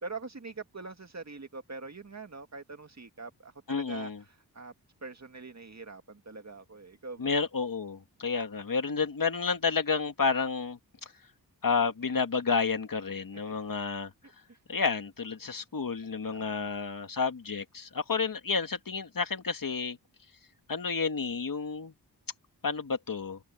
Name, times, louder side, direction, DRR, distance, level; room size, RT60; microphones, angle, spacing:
voice 1, 0.0-4.7 5.0-7.4 13.5-13.6 14.5-14.6 16.3-16.7, right 4 dB, 40° right, 2.3 m, -44 dB
voice 2, 3.7-4.2 7.2-10.8 11.6-14.1 14.7-20.0 20.7-21.9 22.6-23.4, left 5 dB, 55° left, 1.9 m, -30 dB
wide cardioid pair, 70°, 40 cm